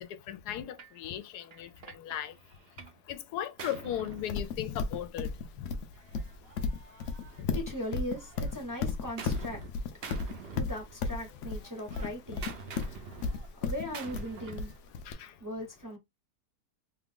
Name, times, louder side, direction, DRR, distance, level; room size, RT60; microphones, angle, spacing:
voice 1, 0.3-1.7 2.0-2.3 3.1-5.3 7.4-7.5 15.1-15.3, left 11 dB, 85° left, 1.1 m, -36 dB
Gunshot gunfire, 0.8-1.0 1.5-3.0 3.3-5.0 5.9-7.8 8.1-9.7 10.0-11.2 11.5-14.8, right 5 dB, 55° right, 0.7 m, -47 dB
Livestock farm animals working animals, 4.3-15.1, left 4 dB, 65° left, 0.8 m, -34 dB
voice 2, 7.3-14.9 15.4-16.0, equal, 15° right, 0.7 m, -40 dB
3.1 x 2.4 x 3.6 m
omnidirectional pair, 1.7 m